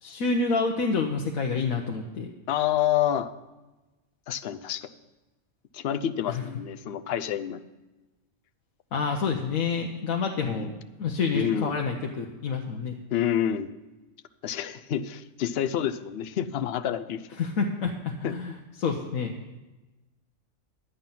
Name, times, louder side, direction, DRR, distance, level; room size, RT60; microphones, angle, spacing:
voice 1, 0.0-2.3 6.3-6.4 8.9-10.7 11.0-13.0 17.4-19.3, left 4 dB, 90° left, 2 dB, 1.3 m, -28 dB
voice 2, 2.5-3.3 4.3-4.9 5.7-7.6 10.5-10.7 11.3-11.8 13.1-13.7 14.4-17.2 18.2-18.4, left 10 dB, 60° left, 11 dB, 0.7 m, -28 dB
11.5 x 9.1 x 5.6 m, 1.1 s
omnidirectional pair, 1.4 m